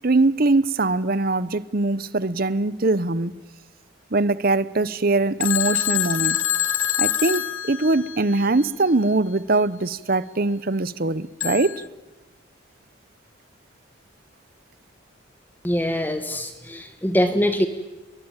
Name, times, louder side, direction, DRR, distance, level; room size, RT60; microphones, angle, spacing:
voice 1, 0.0-3.3 4.1-6.4 7.0-11.7, right 2 dB, 45° right, 0.8 m, -22 dB
Telephone, 5.4-8.4 11.4-11.9, left 11 dB, 85° left, 1.3 m, -25 dB
voice 2, 15.6-17.7, equal, 10° left, 1.5 m, -23 dB
29.0 x 22.5 x 9.0 m
head